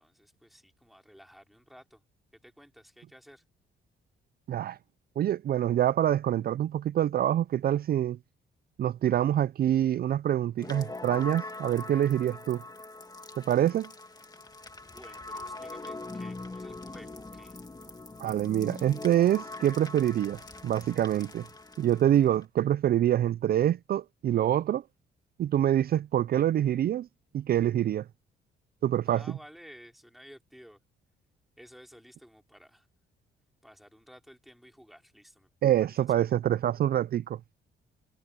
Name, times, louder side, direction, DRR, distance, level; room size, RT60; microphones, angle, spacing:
voice 1, 0.0-2.0 2.3-3.4 14.8-17.6 29.0-30.8 31.6-32.9 33.6-35.5 35.8-36.4, equal, ahead, 4.0 m, -53 dB
voice 2, 5.2-8.2 8.8-12.6 13.5-13.9 18.2-21.5 21.8-24.8 25.4-27.1 27.3-28.1 28.8-29.2 35.6-37.4, right 11 dB, 50° right, 0.4 m, -26 dB
sound 1, 10.6-22.4, left 2 dB, 20° left, 2.5 m, -42 dB
cardioid pair, 90°, 20 cm